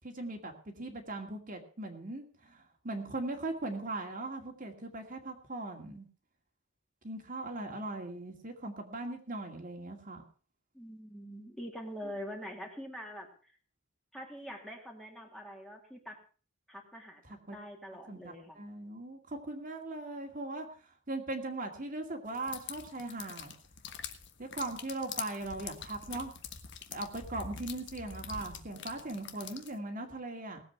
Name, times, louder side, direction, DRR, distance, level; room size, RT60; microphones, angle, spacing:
voice 1, 0.0-6.1 7.0-10.2 17.2-17.6 18.1-23.5 24.4-26.3 26.9-30.6, right 2 dB, 40° right, 3 dB, 2.3 m, -39 dB
voice 2, 10.7-13.6 14.1-16.2 16.7-17.2 17.5-18.6, equal, ahead, 1 dB, 2.3 m, -44 dB
sound 1, 22.3-29.8, left 7 dB, 60° left, 1.4 m, -45 dB
19.0 x 7.9 x 5.8 m, 0.40 s
head